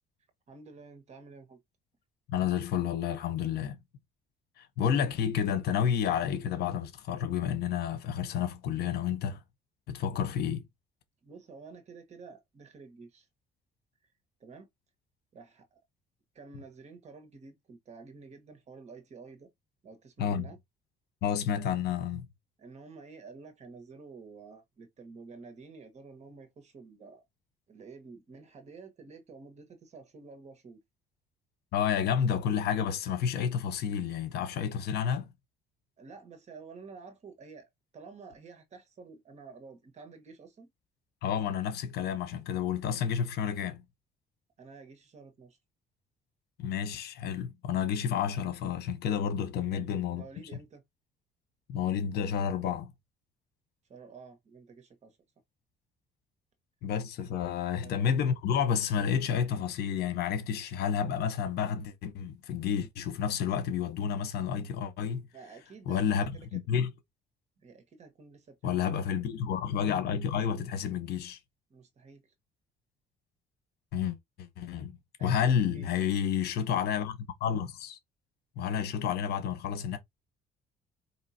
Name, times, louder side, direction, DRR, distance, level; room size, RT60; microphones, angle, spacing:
voice 1, 0.5-1.6 11.2-13.3 14.4-14.7 15.3-15.8 16.3-19.5 19.8-20.6 22.6-27.2 27.7-30.8 36.0-40.7 44.6-45.6 49.7-50.8 53.9-55.2 57.8-57.9 65.3-66.6 67.6-68.9 71.7-72.3 75.2-76.3, right 4 dB, 40° right, 1.4 m, -50 dB
voice 2, 2.3-3.8 4.6-9.4 9.9-10.7 20.2-20.5 21.2-22.3 31.7-35.3 41.2-43.8 46.6-50.2 51.7-52.9 56.8-65.3 65.9-66.9 68.6-71.4 73.9-78.0 78.6-80.0, left 8 dB, 70° left, 1.0 m, -30 dB
4.7 x 2.9 x 2.8 m
cardioid pair, 110°, 17 cm